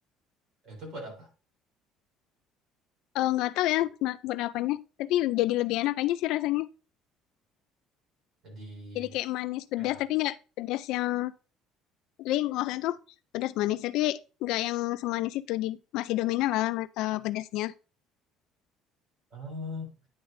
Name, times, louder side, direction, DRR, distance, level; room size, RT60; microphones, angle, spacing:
voice 1, 0.6-1.3 8.4-9.1 9.8-10.0 19.3-19.9, left 1 dB, 40° right, 3.4 m, -40 dB
voice 2, 3.1-6.7 9.0-11.3 12.2-13.0 13.3-17.7, left 16 dB, 60° left, 0.4 m, -29 dB
9.7 x 6.5 x 2.6 m
cardioid pair, 180°, 0 cm